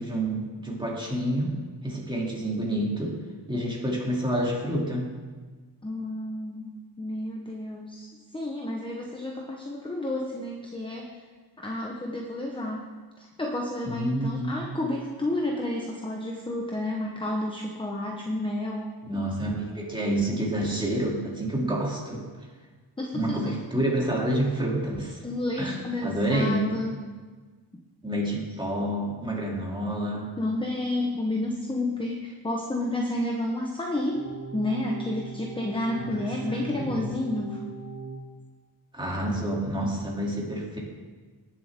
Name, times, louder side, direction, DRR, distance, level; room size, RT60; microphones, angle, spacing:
voice 1, 0.0-3.2 3.5-5.2 13.9-14.6 19.1-22.3 23.1-25.2 25.6-25.7 26.0-26.7 28.0-30.3 35.9-37.1 38.9-40.8, right 1 dB, 10° right, -3 dB, 2.8 m, -28 dB
voice 2, 5.8-11.2 11.6-12.8 13.2-18.9 23.0-23.6 25.2-27.0 30.4-34.3 34.5-37.7, left 1 dB, 10° left, 0 dB, 1.0 m, -31 dB
sound 1, 34.2-38.2, right 4 dB, 85° right, 2.3 m, -39 dB
18.5 x 7.4 x 3.6 m, 1.4 s
wide cardioid pair, 110°, 42 cm